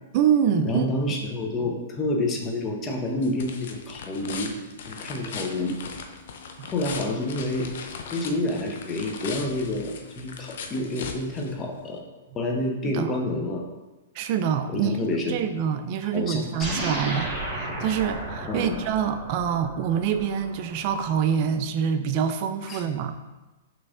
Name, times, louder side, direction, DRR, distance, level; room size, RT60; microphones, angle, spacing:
voice 1, 0.1-0.9 6.6-6.7 12.9-13.1 14.1-14.9 15.3-23.3, right 8 dB, 45° right, 8 dB, 0.3 m, -26 dB
voice 2, 0.6-4.5 4.9-5.8 6.7-7.7 8.1-12.0 12.3-13.6 14.7-15.5 16.1-16.8 18.5-18.8 22.7-22.8, left 1 dB, 20° left, 1 dB, 0.7 m, -28 dB
sound 1, 2.5-12.0, left 5 dB, 65° left, 0.5 m, -39 dB
sound 2, 16.6-21.3, right 1 dB, 10° right, 1.1 m, -34 dB
6.1 x 3.1 x 2.5 m, 1.1 s
hypercardioid pair, 135°, 0 cm